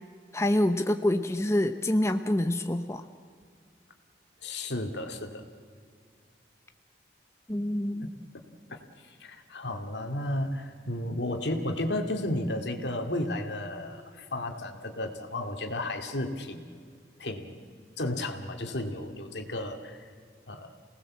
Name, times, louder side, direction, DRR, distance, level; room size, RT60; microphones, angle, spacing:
voice 1, 0.3-3.0 7.5-8.1, left 1 dB, 15° left, 7 dB, 0.7 m, -26 dB
voice 2, 4.4-5.4 8.0-8.1 8.7-16.7 17.2-17.6 18.0-20.1 20.5-20.7, left 1 dB, 70° left, 5 dB, 2.3 m, -33 dB
28.0 x 18.5 x 7.5 m, 2.1 s
head